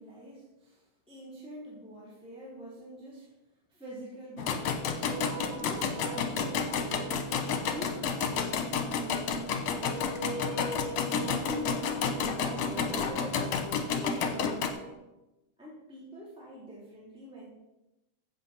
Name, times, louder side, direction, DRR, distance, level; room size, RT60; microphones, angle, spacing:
voice 1, 0.0-3.3 3.7-5.0 5.4-7.2 7.7-10.6 11.1-13.5 14.0-14.8 15.6-17.5, equal, ahead, -7 dB, 3.1 m, -44 dB
sound 1, 4.4-14.7, left 6 dB, 70° left, 2.2 m, -31 dB
sound 2, 5.1-14.9, right 2 dB, 60° right, 4.2 m, -43 dB
13.5 x 8.2 x 4.3 m, 0.97 s
omnidirectional pair, 3.3 m